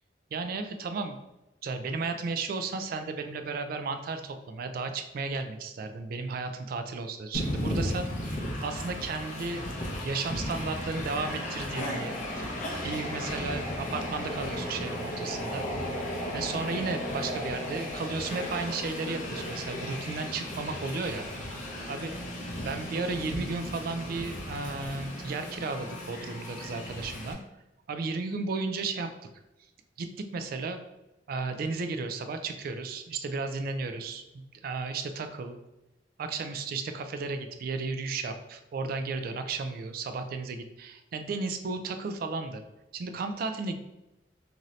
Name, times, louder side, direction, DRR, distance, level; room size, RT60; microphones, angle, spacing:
voice 1, 0.3-1.2 1.6-9.6 10.0-12.5 12.8-15.7 16.0-21.3 21.9-22.1 22.6-27.4 27.9-29.1 30.0-30.8 31.3-34.2 34.6-35.6 36.2-42.6 42.9-43.8, right 4 dB, 55° right, 8 dB, 0.3 m, -34 dB
Train, 7.3-27.3, left 1 dB, 45° left, 0.5 m, -35 dB
2.6 x 2.6 x 3.1 m, 0.96 s
head